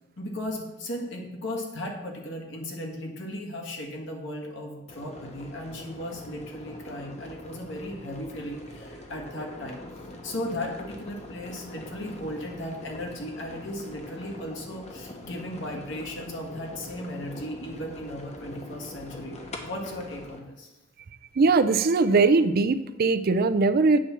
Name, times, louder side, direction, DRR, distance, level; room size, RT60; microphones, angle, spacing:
voice 1, 0.2-9.8 10.2-20.7, left 1 dB, 65° left, 1 dB, 1.8 m, -36 dB
sound 1, 4.9-20.4, left 1 dB, 35° left, 1.1 m, -43 dB
voice 2, 21.3-24.0, right 3 dB, 50° right, 11 dB, 0.5 m, -21 dB
8.6 x 4.3 x 7.0 m, 1.0 s
head